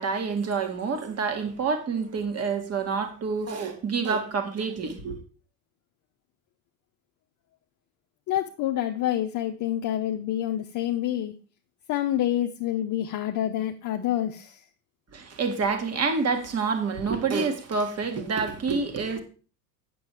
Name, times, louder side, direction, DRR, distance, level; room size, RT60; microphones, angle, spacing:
voice 1, 0.0-5.2 15.1-19.2, right 5 dB, 30° right, 2.0 m, -27 dB
voice 2, 8.3-11.3 11.9-14.6, left 12 dB, 35° left, 0.8 m, -27 dB
8.7 x 7.8 x 4.7 m
hypercardioid pair, 80°, 50 cm